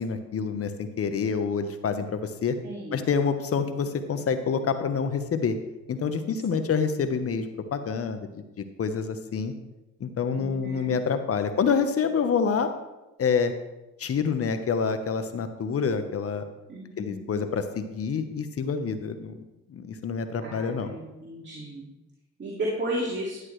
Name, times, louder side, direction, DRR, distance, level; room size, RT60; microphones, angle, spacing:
voice 1, 0.0-2.6 2.9-5.6 5.9-9.5 10.0-12.7 13.2-13.5 14.0-16.4 17.0-19.4 19.7-20.9, left 6 dB, 50° left, 8 dB, 1.0 m, -27 dB
voice 2, 2.6-3.1 6.5-6.7 10.3-11.0 16.7-17.3 20.4-21.9 22.4-23.4, right 1 dB, 35° right, -4 dB, 2.3 m, -34 dB
11.0 x 9.6 x 3.2 m, 1.0 s
cardioid pair, 90°, 30 cm